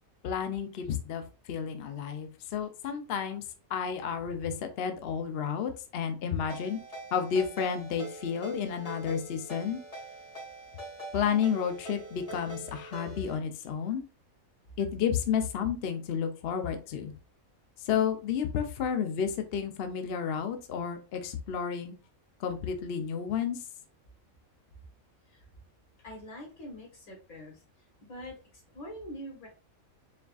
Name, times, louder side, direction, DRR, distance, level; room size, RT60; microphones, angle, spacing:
voice 1, 0.2-3.4 3.7-6.8 7.1-9.8 11.1-14.0 14.8-17.1 17.9-21.9 22.4-23.6, left 7 dB, 60° left, 7 dB, 0.7 m, -31 dB
Ringtone, 6.5-13.4, right 2 dB, 25° left, 1.8 m, -44 dB
voice 2, 26.0-27.6 28.0-29.5, equal, 85° left, -1 dB, 2.1 m, -44 dB
4.7 x 3.5 x 2.4 m, 0.34 s
omnidirectional pair, 1.5 m